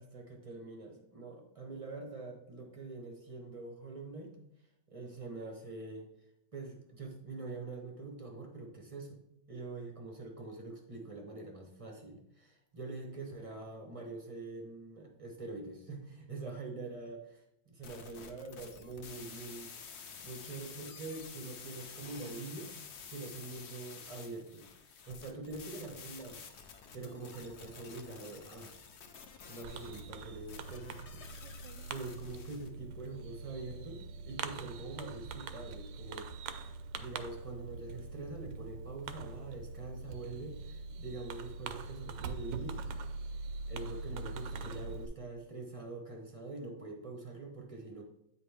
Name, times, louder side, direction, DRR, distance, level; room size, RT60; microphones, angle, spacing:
voice 1, 0.0-4.3 4.9-6.1 6.5-9.2 9.5-19.7 20.2-22.7 23.1-26.4 26.9-28.7 29.5-42.8 43.7-48.0, right 3 dB, 30° right, 2 dB, 0.7 m, -45 dB
sound 1, 17.8-32.7, left 6 dB, 60° left, 0.7 m, -50 dB
Fireworks, 29.6-45.1, right 4 dB, 85° right, 1.3 m, -43 dB
8.7 x 5.0 x 3.4 m, 0.79 s
omnidirectional pair, 1.9 m